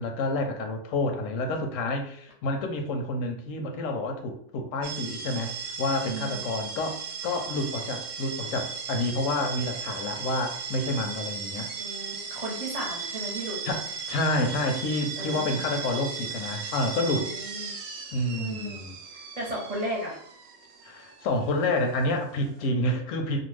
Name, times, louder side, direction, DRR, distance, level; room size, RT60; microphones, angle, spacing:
voice 1, 0.0-11.7 13.6-17.3 18.1-19.0 20.8-23.4, left 2 dB, 90° left, 4 dB, 1.0 m, -29 dB
sound 1, 4.8-22.7, right 6 dB, 80° right, 0.9 m, -37 dB
voice 2, 6.0-6.4 11.8-13.6 15.2-15.7 17.1-17.8 18.3-18.8 19.4-20.2, right 1 dB, 35° right, -4 dB, 0.8 m, -35 dB
2.5 x 2.3 x 3.2 m, 0.64 s
omnidirectional pair, 1.3 m